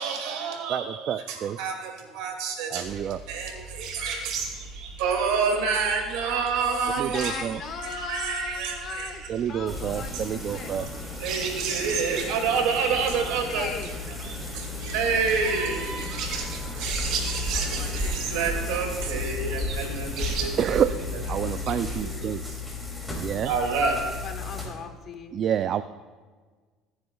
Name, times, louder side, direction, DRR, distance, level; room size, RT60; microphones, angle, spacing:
voice 1, 0.0-4.3 5.0-7.5 7.8-9.3 10.1-10.2 10.8-10.9 11.2-13.7 14.5-20.9 21.4-22.2 23.4-24.0, right 5 dB, 85° right, 3 dB, 2.3 m, -29 dB
voice 2, 0.7-1.6 2.7-3.2 7.0-7.6 9.3-10.9 20.6-20.9 21.3-22.6 23.2-23.5 25.3-25.8, right 9 dB, 50° right, 12 dB, 0.3 m, -28 dB
sound 1, 2.8-22.0, right 5 dB, 65° right, 2.4 m, -37 dB
voice 3, 6.6-9.2 9.5-10.8 13.5-13.9 24.2-25.4, left 6 dB, 45° left, 6 dB, 1.2 m, -37 dB
sound 2, 9.7-24.7, left 2 dB, 5° left, 2.7 m, -33 dB
21.5 x 9.5 x 2.3 m, 1.5 s
cardioid pair, 115°, 0 cm